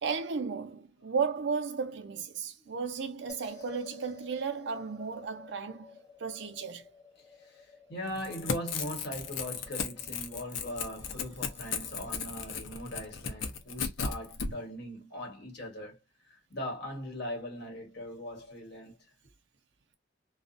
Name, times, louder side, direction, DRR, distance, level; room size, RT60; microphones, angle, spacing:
voice 1, 0.0-6.8 14.4-14.5, right 5 dB, 65° right, 0.5 m, -34 dB
sound 1, 3.3-13.7, left 5 dB, 20° left, 0.7 m, -54 dB
voice 2, 7.4-16.0 16.2-19.0, equal, 60° left, 1.2 m, -40 dB
Crackle / Tearing, 8.1-14.5, left 5 dB, 80° left, 0.6 m, -35 dB
2.4 x 2.1 x 2.5 m
head